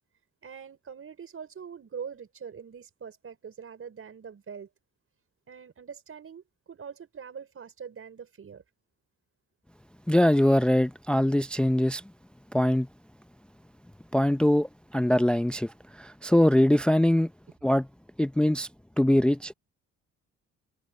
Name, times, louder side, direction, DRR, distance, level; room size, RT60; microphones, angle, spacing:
voice 1, 0.4-4.7 5.5-8.6, right 7 dB, 45° right, 5.5 m, -43 dB
voice 2, 10.1-12.0 12.5-12.9 14.1-17.3 17.6-17.9 18.2-18.7 19.0-19.5, left 1 dB, 5° left, 0.5 m, -22 dB
cardioid pair, 90°, 30 cm